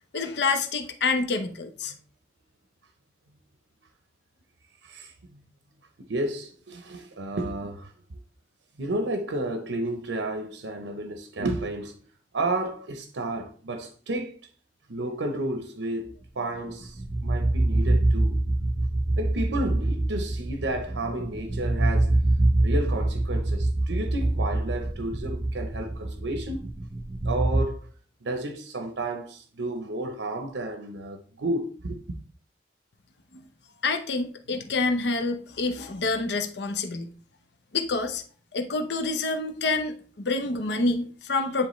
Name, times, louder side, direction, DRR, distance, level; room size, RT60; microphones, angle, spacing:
voice 1, 0.1-1.9 33.3-33.4 33.8-37.1 37.7-38.2 38.5-41.7, left 3 dB, 70° left, 0.7 m, -27 dB
voice 2, 4.8-5.4 6.1-8.2 8.8-11.9 12.3-14.4 14.9-18.4 19.2-22.2 22.6-26.6 27.2-27.9 28.2-32.0, right 1 dB, 90° right, 0.7 m, -32 dB
sound 1, 16.5-27.6, right 2 dB, 20° right, 0.4 m, -25 dB
9.7 x 3.6 x 3.1 m
head